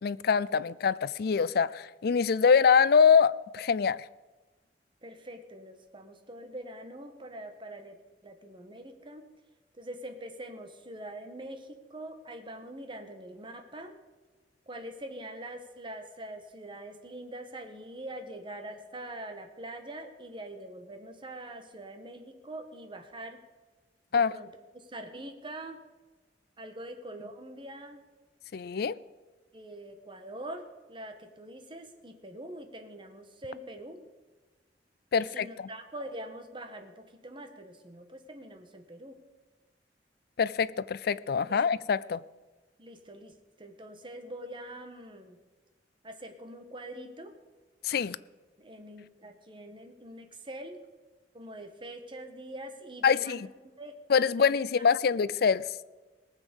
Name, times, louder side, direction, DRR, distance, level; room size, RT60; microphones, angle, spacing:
voice 1, 0.0-4.0 24.1-24.3 28.5-28.9 35.1-35.7 40.4-42.2 47.8-48.2 53.0-53.4 54.1-55.6, left 6 dB, 60° left, 0.4 m, -24 dB
voice 2, 5.0-8.0 8.2-9.3 9.7-13.9 14.7-23.4 24.1-24.5 24.7-25.8 26.6-28.0 29.5-34.0 35.2-39.2 41.4-41.6 42.8-45.4 46.0-47.3 48.6-50.8 51.3-53.5 53.8-54.0 54.2-54.5, right 1 dB, 30° right, 1.5 m, -44 dB
19.0 x 7.3 x 7.0 m
head